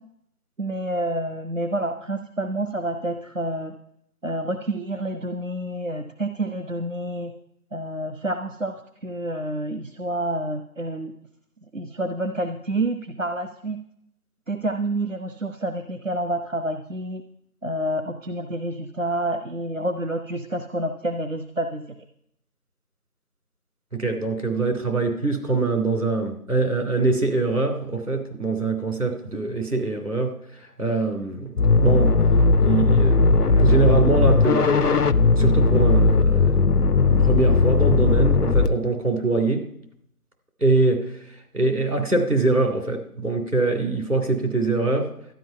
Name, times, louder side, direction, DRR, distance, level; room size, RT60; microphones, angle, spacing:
voice 1, 0.6-3.7 4.2-7.3 7.7-11.1 11.7-13.8 14.5-17.2 17.6-21.8, right 1 dB, 55° right, 7 dB, 0.8 m, -28 dB
voice 2, 23.9-30.3 30.8-32.1 32.6-39.6 40.6-41.0 41.5-45.1, right 3 dB, 75° right, 4 dB, 3.1 m, -23 dB
sound 1, 31.6-38.7, left 3 dB, 85° left, 0.7 m, -18 dB
12.5 x 10.0 x 5.5 m, 0.72 s
figure-of-eight pair, 180°, 45 cm